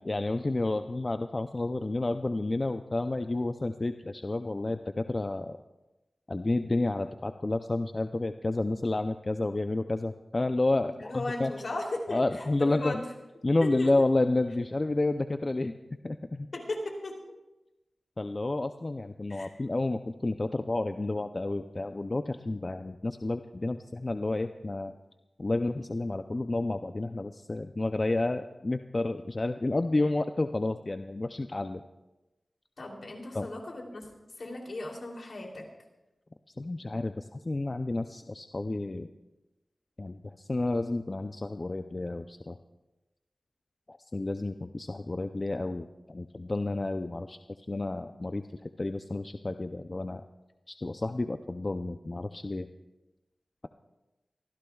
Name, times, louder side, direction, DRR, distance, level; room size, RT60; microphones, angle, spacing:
voice 1, 0.0-5.6 6.3-11.5 12.1-13.0 13.4-15.7 16.0-16.5 18.2-24.9 25.4-31.8 33.3-33.5 36.6-39.1 40.0-42.6 43.9-47.4 47.7-50.2 50.7-52.7, left 2 dB, 40° left, 8 dB, 0.5 m, -30 dB
voice 2, 10.9-12.2 12.5-13.0 13.6-13.9 16.5-17.2 19.3-19.5 32.8-34.1 34.4-35.6, left 2 dB, 70° left, 0 dB, 3.0 m, -36 dB
24.5 x 15.0 x 2.3 m, 1.0 s
wide cardioid pair, 60°, 0 cm